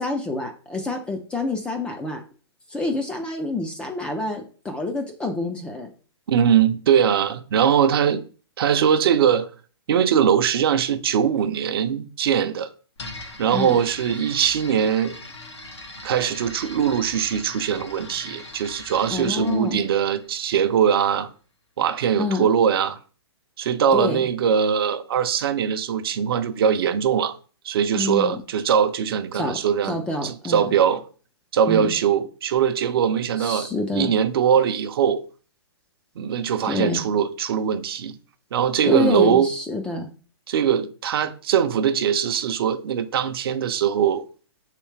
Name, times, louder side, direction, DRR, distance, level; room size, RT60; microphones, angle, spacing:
voice 1, 0.0-2.2 2.7-5.9 13.5-13.8 19.1-19.9 22.2-22.4 23.9-24.3 27.9-28.4 29.3-29.6 29.8-30.7 31.7-31.9 33.4-34.1 36.6-37.0 38.9-40.1, left 2 dB, 5° left, 0.3 m, -27 dB
voice 2, 6.3-8.2 8.6-9.5 9.9-12.7 13.4-15.1 16.0-21.3 21.8-23.0 23.6-27.4 27.6-31.0 31.5-33.7 33.9-35.2 36.2-38.1 38.5-39.5 40.5-44.2, right 8 dB, 60° right, 0.5 m, -21 dB
sound 1, 13.0-20.8, left 2 dB, 85° left, 1.1 m, -40 dB
3.3 x 3.2 x 3.1 m
hypercardioid pair, 140°, 14 cm